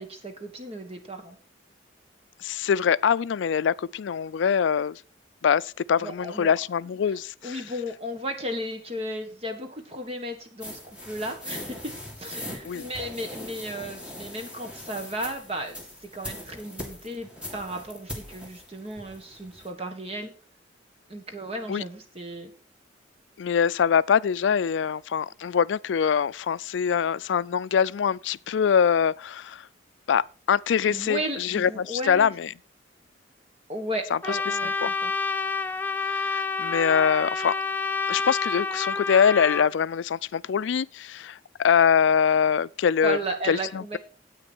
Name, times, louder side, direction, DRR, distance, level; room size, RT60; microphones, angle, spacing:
voice 1, 0.0-1.4 6.0-6.5 7.4-11.9 12.2-20.3 21.1-22.5 30.9-32.3 33.7-35.1 43.0-44.0, right 1 dB, 30° right, 1.5 m, -34 dB
voice 2, 2.4-5.0 5.4-7.6 12.6-12.9 21.7-21.8 23.4-29.7 30.1-32.5 34.1-34.4 34.8-34.9 36.0-37.5 38.1-43.2 43.5-44.0, left 7 dB, 75° left, 0.4 m, -24 dB
sound 1, 10.6-19.7, left 1 dB, 5° right, 2.2 m, -40 dB
Trumpet, 34.2-39.7, left 4 dB, 10° left, 0.4 m, -28 dB
9.8 x 8.6 x 4.4 m
head